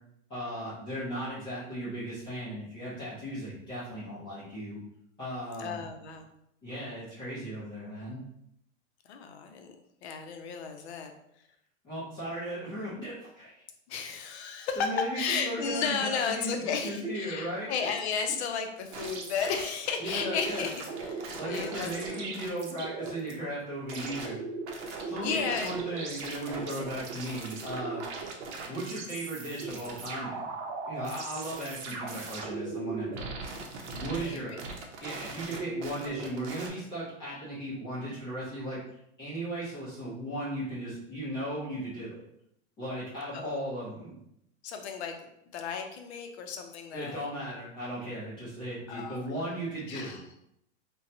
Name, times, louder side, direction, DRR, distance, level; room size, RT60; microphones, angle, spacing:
voice 1, 0.3-4.8 5.2-5.8 6.6-8.2 11.8-13.6 14.8-17.7 20.0-20.7 21.4-24.4 25.1-28.0 28.7-30.5 30.9-33.3 33.9-34.6 35.0-38.8 39.2-42.2 42.8-44.2 46.9-50.2, right 1 dB, 10° left, -11 dB, 0.5 m, -36 dB
voice 2, 5.6-6.3 9.0-9.7 10.0-11.1 13.9-22.3 25.0-25.8 26.6-26.8 32.3-32.5 34.2-34.6 43.3-43.6 44.6-47.3 48.9-49.2 49.9-50.2, left 6 dB, 60° left, 5 dB, 0.5 m, -34 dB
sound 1, 18.9-23.3 23.9-36.7, right 4 dB, 65° right, 0.7 m, -38 dB
2.7 x 2.2 x 2.6 m, 0.76 s
supercardioid pair, 160°, 37 cm